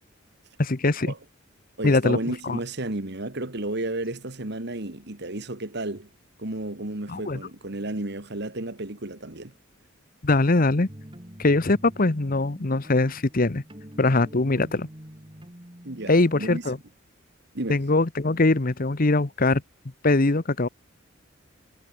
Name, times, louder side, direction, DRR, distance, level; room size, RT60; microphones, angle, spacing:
voice 1, 0.6-1.1 1.8-2.2 2.4-2.6 7.1-7.4 10.2-10.9 11.4-13.6 14.0-14.9 16.1-16.8 17.7-19.6 20.0-20.7, left 2 dB, 45° left, 1.0 m, -22 dB
voice 2, 1.8-6.1 6.4-9.5 15.8-16.6 17.5-17.8, right 2 dB, 55° right, 2.1 m, -32 dB
sound 1, 10.9-16.4, equal, 25° right, 3.3 m, -46 dB
head